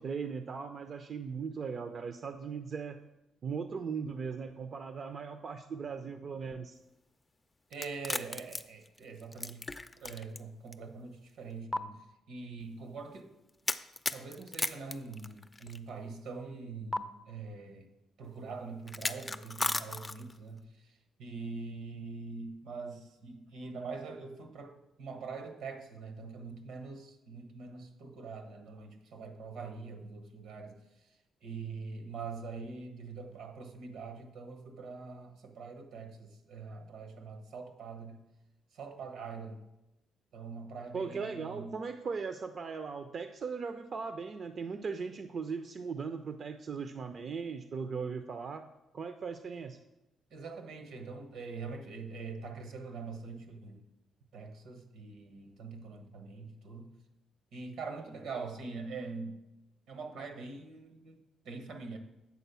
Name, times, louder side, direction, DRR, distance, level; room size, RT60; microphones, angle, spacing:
voice 1, 0.0-3.0 3.4-6.8 40.9-48.7 48.9-49.8, right 5 dB, 50° right, 0.4 m, -38 dB
sound 1, 7.7-10.4 10.7-10.8 11.7-11.8 13.7-15.8 16.9-17.0 18.9-20.4, left 2 dB, 20° left, 0.4 m, -35 dB
voice 2, 7.7-9.7 9.9-13.3 14.1-17.9 18.2-38.2 38.7-39.6 40.3-41.8 50.3-53.9 54.3-56.9 57.5-59.4 59.9-62.0, right 4 dB, 80° right, 1.2 m, -44 dB
8.2 x 4.1 x 6.8 m
cardioid pair, 90°, 0 cm